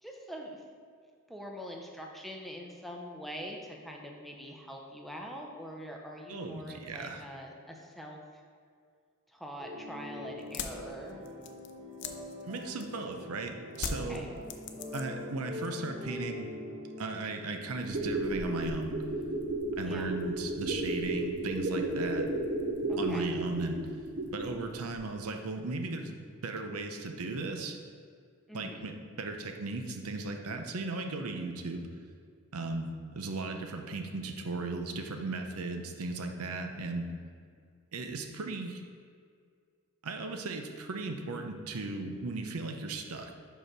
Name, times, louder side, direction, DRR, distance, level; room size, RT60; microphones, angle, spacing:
voice 1, 0.0-0.6 1.3-8.4 9.3-11.2 13.9-14.3 19.8-20.1 22.9-23.3 28.5-28.9, equal, ahead, 0 dB, 0.6 m, -44 dB
voice 2, 6.3-7.2 12.4-14.3 14.9-16.5 17.0-18.9 19.7-22.3 23.0-23.8 24.3-26.2 26.4-27.8 28.5-31.8 32.5-37.1 37.9-38.8 40.0-43.3, right 3 dB, 85° right, 5 dB, 0.7 m, -36 dB
sound 1, 9.6-18.3, left 1 dB, 25° right, 1.0 m, -44 dB
sound 2, 10.4-13.1 13.7-15.3 15.6-16.2, left 6 dB, 55° left, 0.5 m, -40 dB
sound 3, 17.8-24.6 24.9-25.0, right 2 dB, 50° right, 0.8 m, -33 dB
5.2 x 4.9 x 6.0 m, 2.1 s
head